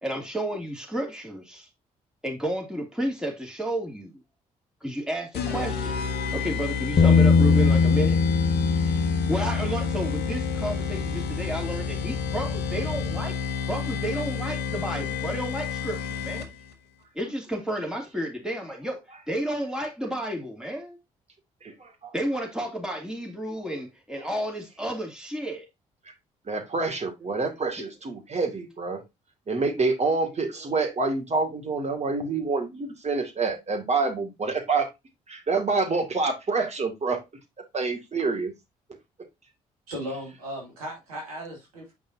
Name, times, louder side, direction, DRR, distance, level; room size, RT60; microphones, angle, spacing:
voice 1, 0.0-1.7 2.2-4.1 4.8-6.0 6.3-8.2 9.3-13.3 13.7-16.5 17.1-21.0 22.1-25.7 27.8-27.9 30.6-30.7, right 1 dB, 5° right, 2.7 m, -31 dB
sound 1, 5.3-16.7, left 6 dB, 65° left, 1.2 m, -31 dB
Bass guitar, 7.0-13.2, left 5 dB, 45° left, 1.0 m, -23 dB
voice 2, 21.6-22.1 26.5-29.0 29.5-34.9 35.3-37.2 37.7-38.5, right 3 dB, 35° right, 2.1 m, -27 dB
voice 3, 39.9-41.9, equal, 85° right, 1.9 m, -36 dB
7.6 x 5.3 x 2.7 m
hypercardioid pair, 45°, 18 cm